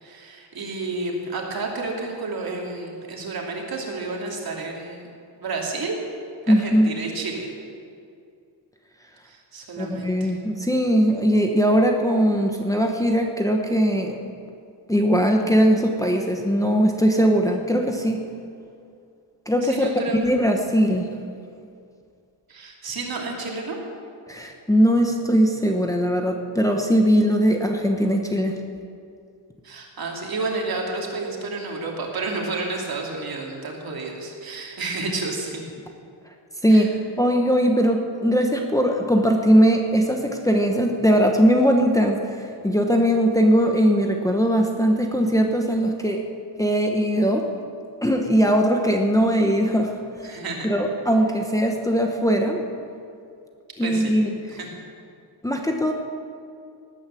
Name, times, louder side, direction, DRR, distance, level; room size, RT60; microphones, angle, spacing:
voice 1, 0.0-5.1 5.4-5.9 6.4-7.5 9.3-10.3 19.6-20.2 22.5-23.8 29.6-35.7 36.7-36.9 50.2-50.7 53.8-54.1 54.5-54.7, right 3 dB, 55° right, 0 dB, 2.8 m, -30 dB
voice 2, 6.5-6.9 9.8-14.3 14.9-18.2 19.5-19.9 20.2-21.1 24.3-28.6 36.6-36.9 37.2-46.2 46.6-47.5 48.0-50.0 50.3-52.6 53.8-54.3 55.4-55.9, equal, 10° left, 2 dB, 0.9 m, -20 dB
18.5 x 9.6 x 7.6 m, 2.4 s
wide cardioid pair, 170°, 42 cm